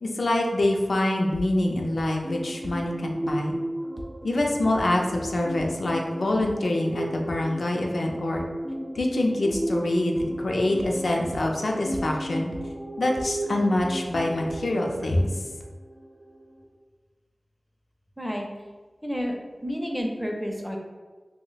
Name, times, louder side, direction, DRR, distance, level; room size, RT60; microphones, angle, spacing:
voice 1, 0.0-3.6 4.2-8.4 8.9-12.5 13.0-15.3, left 1 dB, 90° left, 1 dB, 0.4 m, -25 dB
sound 1, 1.3-1.4 2.0-2.1 2.6-2.7 3.3-3.4 4.0-4.1 4.7-4.8 5.6-5.7 6.4-6.5 8.4-8.5 9.5-9.6 10.2-10.3 10.8-10.9 11.3-11.4 11.9-12.0 12.5-12.6 13.2-13.3 13.8-13.9 14.5-14.6 15.1-15.2, right 1 dB, 70° right, 0.4 m, -38 dB
sound 2, 2.2-16.6, right 1 dB, 35° right, 0.7 m, -34 dB
voice 2, 19.0-20.8, equal, ahead, 1 dB, 0.5 m, -30 dB
2.9 x 2.0 x 3.9 m, 1.3 s
wide cardioid pair, 75°, 0 cm